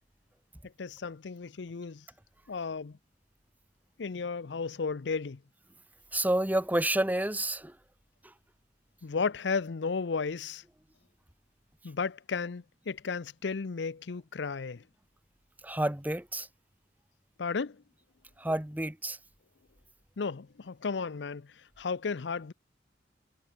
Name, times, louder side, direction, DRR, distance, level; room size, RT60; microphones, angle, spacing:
voice 1, 0.8-2.0 2.5-3.0 4.0-5.4 9.0-10.6 11.8-14.8 17.4-17.8 20.2-21.5 21.8-22.5, left 5 dB, 70° left, 0.6 m, -34 dB
voice 2, 6.1-7.7 15.6-16.5 18.4-19.2, right 1 dB, 10° right, 1.2 m, -29 dB
head